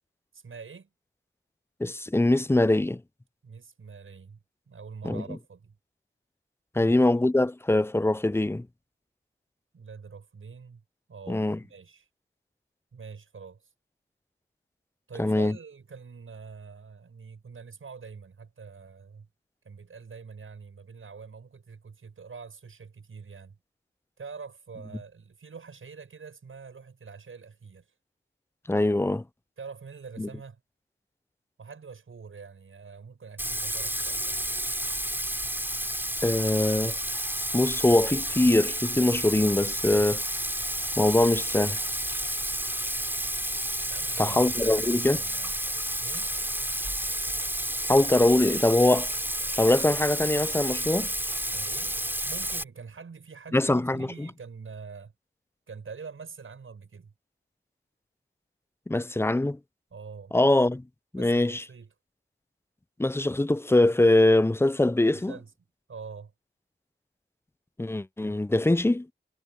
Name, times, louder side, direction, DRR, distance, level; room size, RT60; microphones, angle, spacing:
voice 1, 0.3-0.9 3.4-4.4 4.7-5.8 6.8-7.0 9.7-10.8 11.1-12.1 12.9-13.7 15.1-19.3 19.6-23.6 24.2-27.9 29.6-30.6 31.6-34.4 43.9-45.6 46.0-46.3 51.5-52.0 52.3-55.1 55.7-57.1 59.9-60.3 61.1-61.9 65.1-65.5 65.9-66.3, right 5 dB, 90° right, 7.7 m, -45 dB
voice 2, 1.8-3.0 5.0-5.2 6.8-8.7 11.3-11.6 15.2-15.5 28.7-29.2 30.2-30.3 36.2-36.9 37.5-40.2 41.0-41.8 44.2-45.2 47.9-49.1 49.6-51.1 53.5-54.3 58.9-59.6 60.3-60.8 61.1-61.6 63.0-65.3 67.8-69.1, left 2 dB, 10° left, 0.5 m, -23 dB
Bathtub (filling or washing), 33.4-52.6, right 1 dB, 10° right, 3.6 m, -31 dB
cardioid pair, 50°, 21 cm